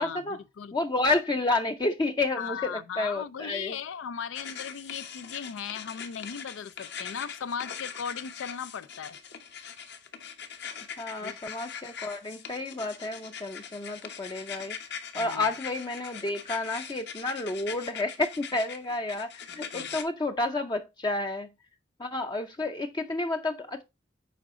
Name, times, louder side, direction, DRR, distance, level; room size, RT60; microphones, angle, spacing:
voice 1, 0.0-0.4 0.7-3.8 11.0-21.5 22.0-23.8, left 2 dB, 20° left, 0.5 m, -30 dB
voice 2, 2.4-9.2 11.2-11.4 15.2-15.5 19.7-19.9, left 7 dB, 85° left, 0.4 m, -37 dB
sound 1, 4.3-20.0, left 7 dB, 60° left, 1.1 m, -41 dB
8.4 x 4.9 x 3.6 m
head